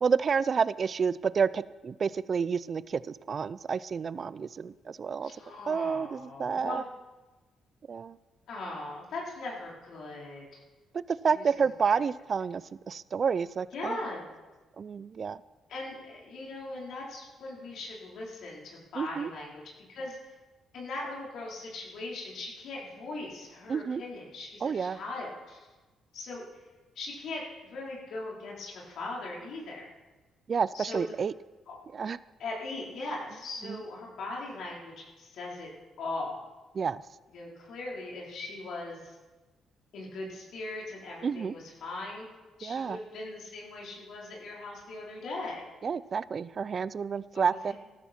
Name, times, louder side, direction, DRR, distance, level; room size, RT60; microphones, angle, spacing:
voice 1, 0.0-5.3 5.7-6.8 7.9-8.1 11.2-14.0 14.8-15.4 19.0-19.3 23.7-24.0 24.6-25.0 30.5-31.3 31.9-32.2 36.8-37.0 41.2-41.5 42.6-43.0 45.8-47.7, right 6 dB, 45° right, 17 dB, 0.4 m, -29 dB
voice 2, 5.2-6.9 8.5-10.6 11.3-11.7 13.7-14.3 15.7-19.6 19.9-20.3 20.7-25.6 26.1-26.5 27.0-29.9 30.7-31.0 31.7-31.8 32.4-35.7 36.0-36.4 37.3-39.2 39.9-42.3 42.6-45.6 47.3-47.7, left 2 dB, 70° left, -3 dB, 4.1 m, -39 dB
14.5 x 13.0 x 4.4 m, 1.2 s
cardioid pair, 90°, 0 cm